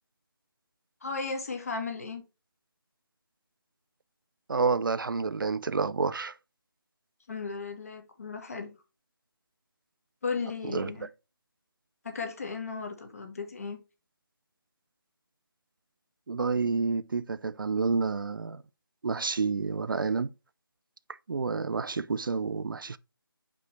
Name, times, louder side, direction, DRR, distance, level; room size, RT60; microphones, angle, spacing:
voice 1, 1.0-2.2 7.3-8.8 10.2-11.1 12.0-13.8, left 4 dB, 40° left, 1.6 m, -35 dB
voice 2, 4.5-6.3 10.7-10.9 16.3-18.6 19.0-20.3 21.3-23.0, right 4 dB, 60° right, 0.4 m, -29 dB
6.4 x 5.2 x 3.1 m
figure-of-eight pair, 170°, 12 cm